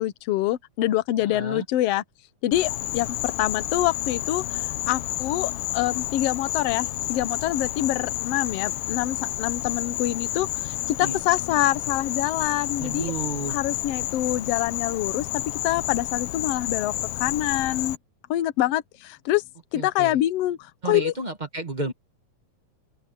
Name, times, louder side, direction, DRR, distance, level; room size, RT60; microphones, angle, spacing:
voice 1, 0.0-2.0 2.4-13.1 13.5-15.3 15.6-16.9 17.2-18.0 18.3-19.4 19.7-21.1, left 14 dB, 65° left, 1.6 m, -26 dB
voice 2, 1.2-1.6 11.0-11.2 12.8-13.6 19.7-20.2 20.8-21.9, right 3 dB, 45° right, 0.5 m, -32 dB
Insect, 2.5-18.0, left 16 dB, 85° left, 2.3 m, -30 dB
open air
omnidirectional pair, 3.6 m